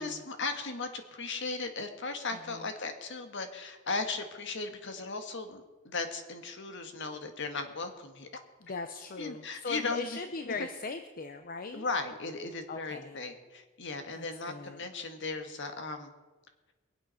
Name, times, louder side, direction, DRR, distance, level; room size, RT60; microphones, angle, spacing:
voice 1, 0.0-8.4 9.2-10.2 10.5-10.6 11.7-16.1, left 3 dB, 60° left, 7 dB, 1.6 m, -37 dB
voice 2, 8.6-11.9 12.7-13.2 14.1-14.8, left 4 dB, 45° left, 8 dB, 0.7 m, -40 dB
22.5 x 8.1 x 5.7 m, 1.2 s
head